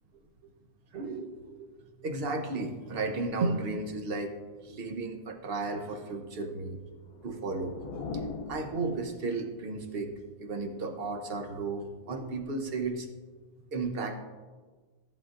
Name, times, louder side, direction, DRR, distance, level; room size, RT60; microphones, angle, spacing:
voice 1, 0.9-1.7 2.0-4.3 4.6-6.8 7.2-7.7 8.5-10.1 10.4-13.1 13.7-14.2, right 3 dB, 45° right, 5 dB, 0.9 m, -34 dB
sound 1, 6.9-9.6, left 4 dB, 75° left, 1.3 m, -41 dB
14.0 x 7.2 x 2.5 m, 1.4 s
omnidirectional pair, 1.6 m